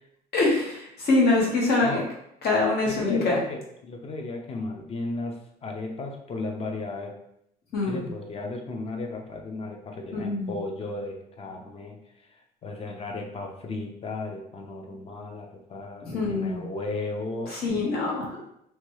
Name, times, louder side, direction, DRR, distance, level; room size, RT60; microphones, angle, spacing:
voice 1, 0.3-2.0 2.4-3.4 7.7-8.1 10.1-10.5 16.0-16.6 17.5-18.4, left 3 dB, 70° left, -3 dB, 1.0 m, -24 dB
voice 2, 2.9-5.3 5.6-7.1 7.8-12.0 12.6-17.5, left 2 dB, 35° left, 3 dB, 0.6 m, -34 dB
2.9 x 2.2 x 3.0 m, 0.77 s
cardioid pair, 110°, 17 cm